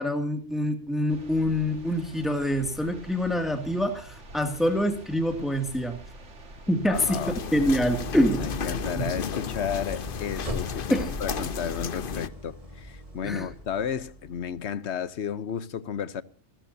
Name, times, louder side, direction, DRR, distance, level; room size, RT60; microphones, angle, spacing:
voice 1, 0.0-6.0 6.7-7.2 7.5-8.5 8.9-9.0 10.9-11.2 13.2-13.5, equal, ahead, 2.3 m, -26 dB
sound 1, 1.1-7.9, right 2 dB, 70° right, 2.4 m, -46 dB
voice 2, 6.9-7.3 8.4-16.2, left 8 dB, 65° left, 1.2 m, -33 dB
sound 2, 6.9-12.3, left 6 dB, 50° left, 1.0 m, -33 dB
Idling, 7.5-14.6, equal, 30° right, 2.5 m, -39 dB
28.0 x 14.0 x 2.8 m
omnidirectional pair, 1.2 m